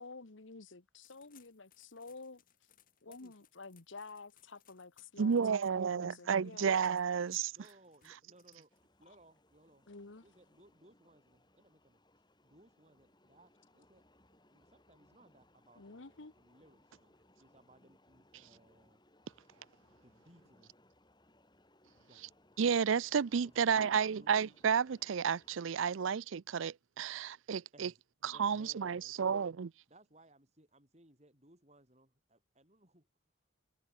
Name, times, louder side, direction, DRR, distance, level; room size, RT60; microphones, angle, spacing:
voice 1, 0.0-2.4 3.0-6.7 9.9-10.2 15.8-16.3, left 3 dB, 70° left, 1.3 m, -51 dB
sound 1, 1.0-9.0, left 11 dB, 45° left, 6.6 m, -68 dB
voice 2, 5.2-7.5 22.6-27.9 28.2-29.7, right 6 dB, 75° right, 0.5 m, -31 dB
voice 3, 7.5-8.7 9.0-9.9 10.2-12.0 12.4-14.1 14.5-19.0 19.9-20.7 22.1-22.5 23.4-24.4 27.7-28.0 28.3-29.5 29.9-33.1, right 1 dB, 35° right, 7.2 m, -63 dB
sound 2, 8.7-25.6, left 1 dB, 20° left, 7.4 m, -68 dB
head